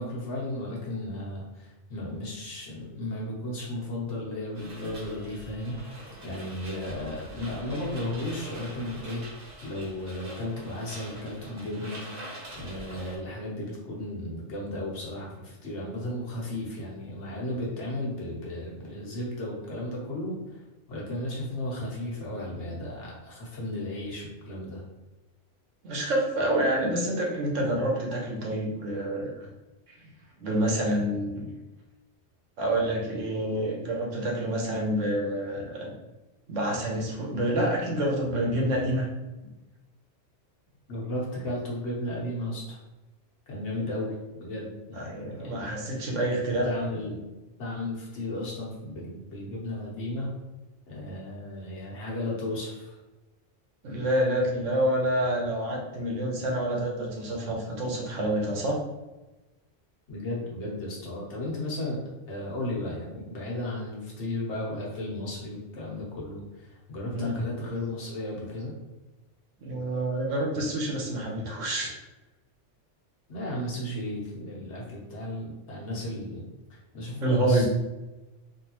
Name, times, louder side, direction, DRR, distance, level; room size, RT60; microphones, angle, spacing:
voice 1, 0.0-12.0 12.5-20.6 20.9-24.8 40.9-42.8 43.5-46.0 46.6-47.2 47.6-50.3 50.9-53.0 60.1-62.0 62.3-68.7 73.3-76.4 76.7-77.7, left 1 dB, 70° left, -4 dB, 1.3 m, -34 dB
sound 1, 4.5-13.2, right 1 dB, 50° right, 1.0 m, -44 dB
voice 2, 25.8-29.3 30.4-31.4 32.6-35.9 36.5-39.1 45.0-46.7 53.8-58.8 67.1-67.3 69.6-72.0 77.2-77.7, right 1 dB, 85° right, -1 dB, 1.2 m, -27 dB
3.4 x 2.7 x 2.9 m, 1.1 s
omnidirectional pair, 1.3 m